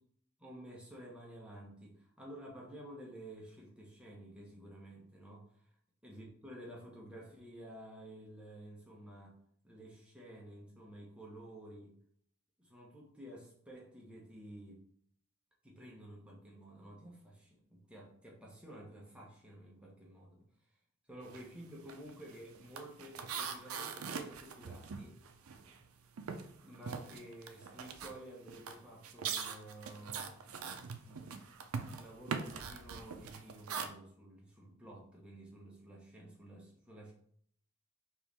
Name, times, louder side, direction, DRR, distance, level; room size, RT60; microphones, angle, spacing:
voice 1, 0.4-5.7 6.0-9.4 9.6-11.9 12.6-14.9 15.6-20.5 21.1-25.2 26.6-31.3 32.0-37.1, right 1 dB, 5° right, -3 dB, 0.9 m, -52 dB
sound 1, 21.2-21.5 21.8-25.9 26.2-33.9, right 6 dB, 90° right, 0.5 m, -42 dB
4.5 x 3.0 x 3.4 m, 0.63 s
head